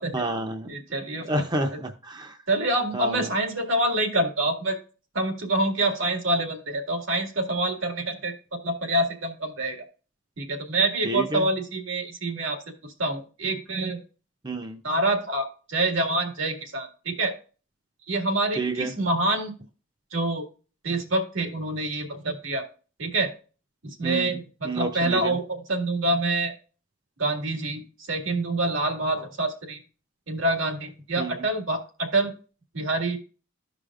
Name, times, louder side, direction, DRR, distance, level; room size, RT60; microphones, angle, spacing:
voice 1, 0.1-0.7 1.2-2.4 2.9-3.3 11.0-11.5 14.4-14.8 18.6-18.9 24.0-24.4 24.6-25.4 31.2-31.4, right 2 dB, 20° right, 5 dB, 0.6 m, -29 dB
voice 2, 0.7-1.3 2.5-4.8 5.1-9.9 10.4-14.0 14.8-17.3 18.1-19.5 20.1-20.4 20.8-22.7 23.0-23.3 23.8-26.5 27.2-29.8 30.3-32.3 32.7-33.2, right 2 dB, 80° right, 4 dB, 2.0 m, -26 dB
14.0 x 5.0 x 2.4 m, 0.36 s
head